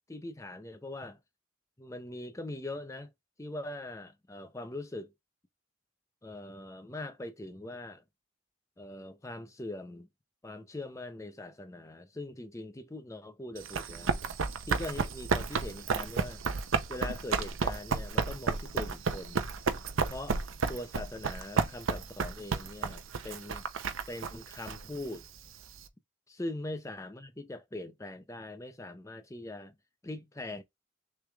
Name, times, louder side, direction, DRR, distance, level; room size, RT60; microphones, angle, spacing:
voice 1, 0.1-1.2 1.8-3.1 3.4-5.1 6.2-8.0 8.8-10.1 10.4-14.2 14.7-16.4 16.9-19.5 20.1-20.4 20.7-23.6 24.1-25.3 26.3-29.7 30.0-30.6, left 2 dB, 15° left, 0.5 m, -42 dB
Run, 13.6-25.8, right 4 dB, 80° right, 0.6 m, -32 dB
6.5 x 3.3 x 2.3 m
head